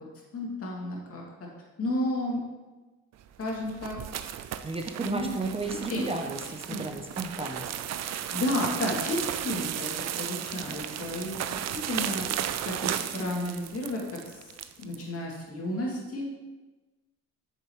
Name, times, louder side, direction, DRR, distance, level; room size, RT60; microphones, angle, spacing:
voice 1, 0.3-1.5 1.8-2.4 3.4-4.0 5.0-5.3 5.9-6.1 6.7-6.8 8.1-12.3 12.6-14.5 14.8-16.3, left 1 dB, 50° left, -3 dB, 2.4 m, -32 dB
sound 1, 3.3-15.0, right 10 dB, 60° right, 0.5 m, -34 dB
voice 2, 4.6-7.7, right 3 dB, 20° right, 3 dB, 0.6 m, -33 dB
7.9 x 6.9 x 3.1 m, 1.2 s
cardioid pair, 90°, 30 cm